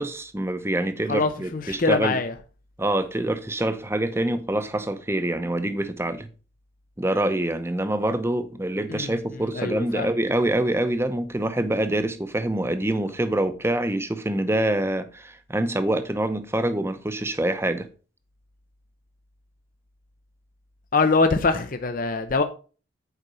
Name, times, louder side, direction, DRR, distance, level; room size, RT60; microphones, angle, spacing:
voice 1, 0.0-2.2 2.8-6.3 7.0-17.9, right 1 dB, 15° right, 0.8 m, -25 dB
voice 2, 1.1-2.3 8.9-9.1 9.5-10.1 20.9-22.4, left 3 dB, 45° left, 0.6 m, -23 dB
8.1 x 5.1 x 5.5 m
head